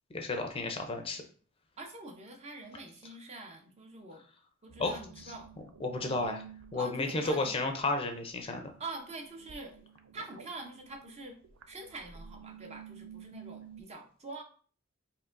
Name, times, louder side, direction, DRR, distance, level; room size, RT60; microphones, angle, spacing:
voice 1, 0.1-1.2 4.8-5.0 5.8-6.4 6.7-8.7, left 2 dB, 25° left, 4 dB, 0.5 m, -32 dB
voice 2, 1.8-4.2 4.6-5.5 6.0-6.4 6.7-7.6 8.8-9.9 10.1-11.4 11.7-14.4, right 2 dB, 30° right, 3 dB, 0.6 m, -45 dB
sound 1, 4.7-13.8, right 8 dB, 80° right, 0.4 m, -52 dB
4.5 x 2.8 x 2.5 m, 0.43 s
head